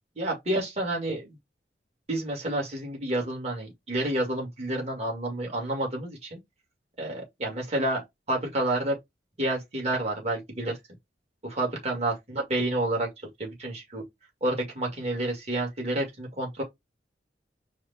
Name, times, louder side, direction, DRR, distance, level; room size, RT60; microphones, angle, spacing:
voice 1, 0.2-1.4 2.1-6.4 7.0-9.0 9.4-10.8 11.4-14.0 14.4-16.6, right 1 dB, 35° right, 2.0 m, -29 dB
4.8 x 2.4 x 4.1 m
head